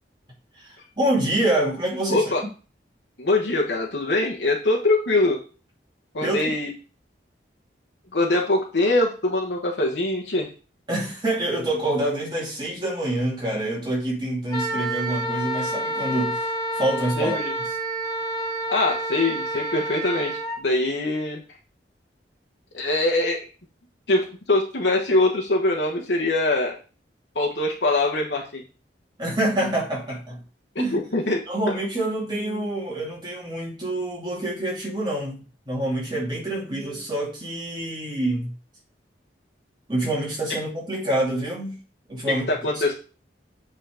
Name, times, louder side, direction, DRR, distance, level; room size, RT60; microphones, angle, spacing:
voice 1, 0.6-2.3 6.2-6.4 10.9-17.4 29.2-30.4 30.8-31.0 31.5-38.5 39.9-41.8 42.1-42.5, right 1 dB, 25° right, -3 dB, 2.5 m, -26 dB
voice 2, 2.1-2.4 3.2-5.4 6.1-6.7 8.1-10.5 17.2-17.5 18.7-21.4 22.7-23.5 24.1-26.8 27.3-28.6 30.9-31.4 42.3-42.9, left 2 dB, 80° left, -1 dB, 1.2 m, -23 dB
Wind instrument woodwind instrument, 14.5-20.6, right 1 dB, 20° left, 2.8 m, -29 dB
8.1 x 4.1 x 5.0 m, 0.36 s
head